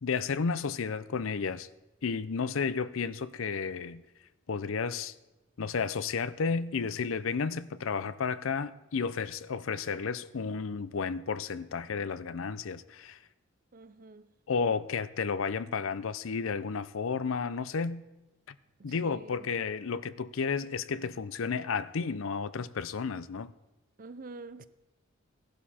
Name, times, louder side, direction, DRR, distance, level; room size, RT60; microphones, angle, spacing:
voice 1, 0.0-1.7 2.0-4.0 4.5-5.1 5.6-13.2 14.5-18.0 18.8-23.5, left 5 dB, 70° left, 0.5 m, -32 dB
voice 2, 13.7-14.3 18.8-19.5 24.0-24.7, right 3 dB, 40° right, 0.6 m, -47 dB
16.5 x 12.0 x 4.3 m
head